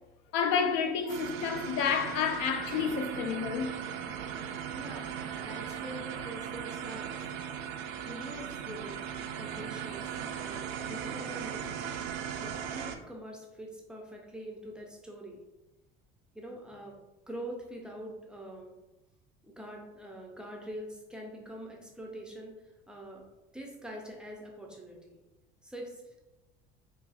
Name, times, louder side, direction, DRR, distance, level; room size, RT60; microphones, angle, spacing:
voice 1, 0.3-3.7, left 6 dB, 70° left, 0.4 m, -30 dB
sound 1, 1.1-13.0, right 8 dB, 70° right, 0.4 m, -38 dB
voice 2, 4.7-5.1 5.4-7.2 8.0-9.1 9.4-11.7 12.4-15.4 16.3-17.0 17.3-18.7 19.4-22.6 22.9-23.2 23.5-25.2 25.6-26.3, right 1 dB, 5° right, 0.4 m, -44 dB
4.0 x 2.3 x 2.4 m
cardioid pair, 145°, 20 cm